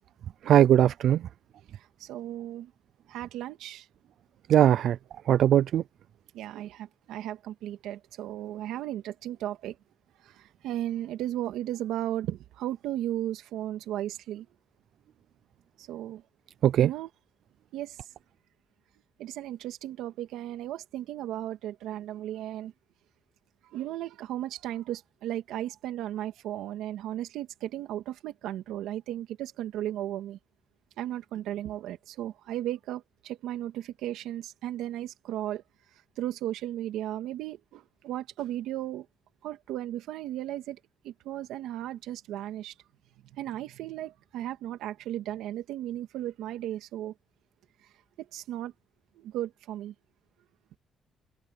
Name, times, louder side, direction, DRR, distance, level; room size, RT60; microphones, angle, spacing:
voice 1, 0.4-1.3 4.5-5.0 5.3-5.8 16.6-16.9, right 11 dB, 70° right, 0.4 m, -20 dB
voice 2, 1.7-2.7 3.1-3.9 6.3-9.8 10.2-14.5 15.8-16.2 16.8-17.1 17.7-18.0 19.2-22.7 23.7-30.4 31.0-35.6 36.2-39.1 39.4-40.8 41.0-42.7 43.3-47.1 48.2-48.7 49.2-49.9, right 13 dB, 90° right, 2.2 m, -35 dB
cardioid pair, 90°, 0 cm